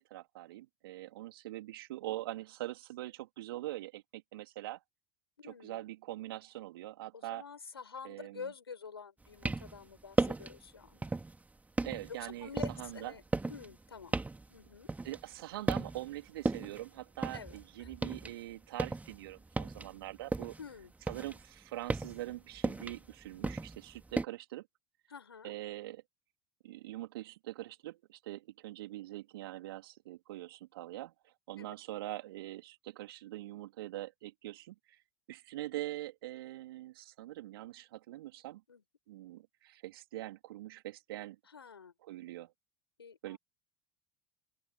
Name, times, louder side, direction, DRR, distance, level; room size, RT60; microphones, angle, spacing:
voice 1, 0.0-4.8 5.4-7.4 8.0-8.5 11.8-12.5 12.8-13.2 15.0-20.6 21.1-24.7 25.4-26.0 26.6-31.1 31.5-35.0 35.3-38.6 39.1-41.4 42.0-42.5 43.2-43.4, right 16 dB, 70° right, 3.0 m, -43 dB
voice 2, 5.4-5.8 7.1-11.1 12.2-14.2 14.5-14.9 17.3-17.9 20.6-20.9 25.1-25.5 31.6-31.7 38.7-38.8 41.5-41.9 43.0-43.4, left 6 dB, 85° left, 5.5 m, -48 dB
sound 1, 9.2-9.8 10.1-10.6 11.0-11.4 11.8-15.4 15.7-16.1 16.5-18.3 18.6-20.7 21.0-24.3, right 3 dB, 10° right, 2.3 m, -35 dB
open air
figure-of-eight pair, 70°, 13 cm